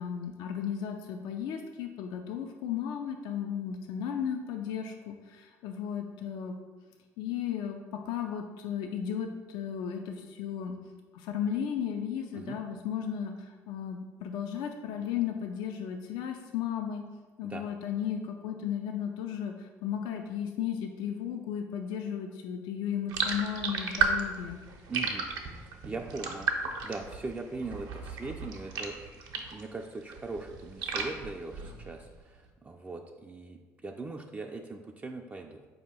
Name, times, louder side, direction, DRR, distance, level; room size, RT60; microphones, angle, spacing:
voice 1, 0.0-6.5 7.2-10.8 11.1-17.0 17.4-24.6, left 8 dB, 75° left, 4 dB, 0.3 m, -35 dB
sound 1, 23.1-29.7 30.0-32.1, right 5 dB, 70° right, 0.6 m, -34 dB
voice 2, 24.9-25.3 25.6-29.0 29.3-35.7, right 3 dB, 20° right, 2 dB, 0.3 m, -40 dB
4.4 x 2.8 x 4.1 m, 1.3 s
supercardioid pair, 65°, 7 cm